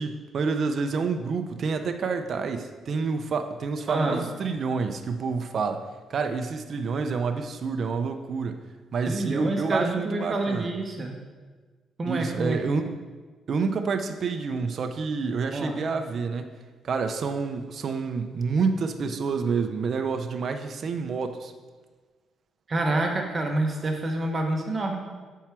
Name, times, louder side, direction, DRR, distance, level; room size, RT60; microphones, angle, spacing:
voice 1, 0.0-5.8 6.1-8.6 8.9-10.7 12.1-12.9 13.5-16.5 16.8-21.5, right 5 dB, 55° right, 7 dB, 0.5 m, -28 dB
voice 2, 3.9-4.2 9.1-11.2 12.0-12.6 15.5-15.8 22.7-25.0, right 2 dB, 35° right, 3 dB, 0.9 m, -27 dB
7.2 x 4.6 x 4.5 m, 1.4 s
cardioid pair, 90°, 0 cm